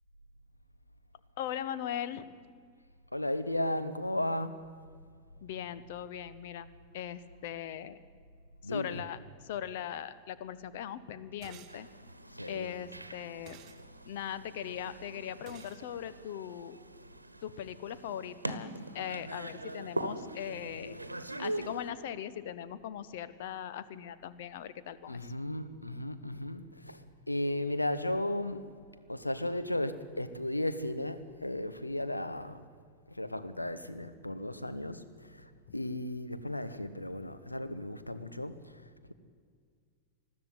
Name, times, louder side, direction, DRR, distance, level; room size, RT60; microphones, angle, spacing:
voice 1, 1.4-2.3 5.4-6.7 6.9-8.0 8.6-11.9 12.5-13.6 14.0-16.8 17.4-21.0 21.4-25.3, left 10 dB, 55° left, 1.0 m, -40 dB
voice 2, 3.1-4.7 8.6-9.0 12.3-12.7 25.1-28.7 29.1-32.6 33.1-39.1, left 1 dB, 85° left, 1.0 m, -35 dB
sound 1, 11.4-11.8 13.5-13.8 15.5-15.8, right 10 dB, 35° right, 1.4 m, -52 dB
sound 2, 11.7-21.9, right 1 dB, 85° right, 1.1 m, -42 dB
20.5 x 13.0 x 9.4 m
figure-of-eight pair, 90°, 0 cm